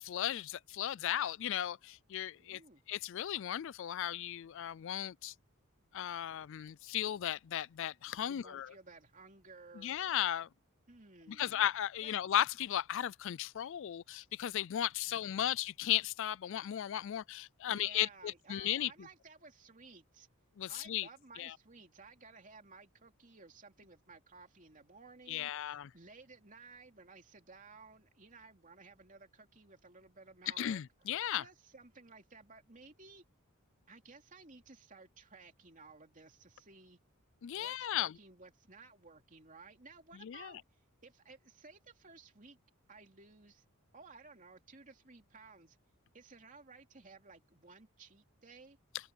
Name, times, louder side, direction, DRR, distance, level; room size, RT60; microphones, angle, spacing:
voice 1, 0.0-2.6 2.9-5.3 5.9-8.7 9.8-10.5 11.3-18.9 20.6-21.1 21.4-21.5 25.3-25.9 30.5-31.4 37.4-38.1 40.2-40.5, left 11 dB, 60° left, 0.3 m, -36 dB
voice 2, 2.4-2.8 8.2-9.9 10.9-12.2 15.0-15.6 17.7-20.3 20.7-33.2 33.9-37.0 37.5-42.6 42.9-43.6 43.9-45.8 46.1-48.8, right 4 dB, 35° right, 2.9 m, -57 dB
open air
head